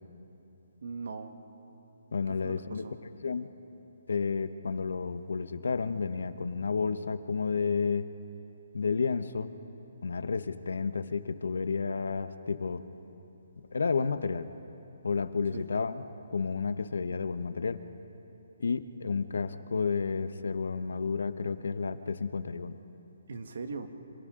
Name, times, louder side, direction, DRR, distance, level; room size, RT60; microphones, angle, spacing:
voice 1, 0.8-1.4 2.3-2.9 15.5-15.7 23.3-23.9, right 4 dB, 60° right, 7 dB, 1.5 m, -40 dB
voice 2, 2.1-2.9 3.2-3.5 4.1-8.1 8.7-9.5 10.0-12.8 13.7-14.5 15.0-16.0 16.3-17.8 18.6-22.8, left 5 dB, 80° left, 11 dB, 0.9 m, -31 dB
28.5 x 27.0 x 3.8 m, 3.0 s
hypercardioid pair, 170°, 0 cm